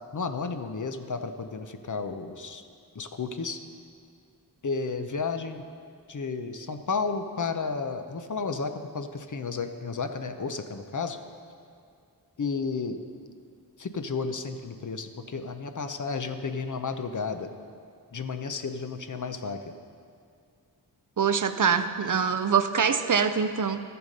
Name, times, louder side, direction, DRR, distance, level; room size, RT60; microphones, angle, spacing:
voice 1, 0.1-2.6 2.9-3.6 4.6-5.6 6.1-11.2 12.4-13.0 13.8-17.5 18.1-19.6, left 4 dB, 45° left, 7 dB, 0.8 m, -32 dB
voice 2, 21.2-23.8, right 6 dB, 50° right, 10 dB, 0.6 m, -24 dB
13.0 x 6.9 x 5.3 m, 2.2 s
cardioid pair, 55°, 42 cm